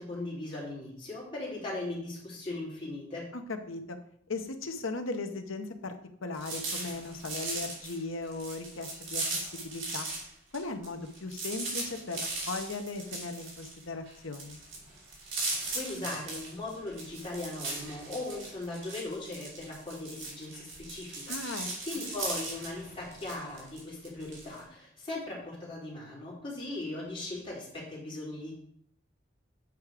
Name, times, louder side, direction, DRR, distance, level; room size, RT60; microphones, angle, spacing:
voice 1, 0.0-3.3 15.7-28.5, left 2 dB, 25° left, -5 dB, 3.4 m, -39 dB
voice 2, 3.3-4.0 4.3-6.0 6.2-10.1 10.5-14.6 21.3-21.7, left 3 dB, 85° left, 7 dB, 1.0 m, -37 dB
sound 1, 6.3-10.3 10.5-24.6, right 2 dB, 70° right, 3.0 m, -38 dB
8.4 x 4.8 x 4.9 m, 0.66 s
head